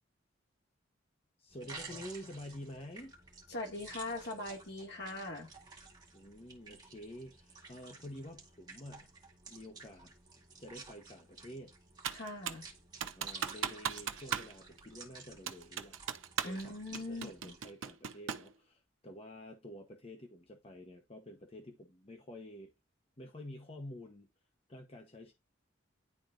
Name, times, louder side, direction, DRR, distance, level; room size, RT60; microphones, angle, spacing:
voice 1, 1.4-3.1 6.1-9.1 9.5-10.1 10.6-11.7 13.0-16.0 16.4-22.7 23.2-24.3 24.7-25.3, left 1 dB, 30° left, 0.9 m, -49 dB
sound 1, 1.5-17.7, right 4 dB, 20° right, 2.1 m, -53 dB
voice 2, 3.5-5.5 12.1-12.7 16.4-17.5, left 2 dB, 60° left, 1.9 m, -41 dB
Computer keyboard, 12.0-12.7 13.0-14.5 14.8-14.9 15.5-16.6 16.9-18.5, right 8 dB, 85° right, 0.7 m, -38 dB
10.5 x 4.2 x 2.5 m
head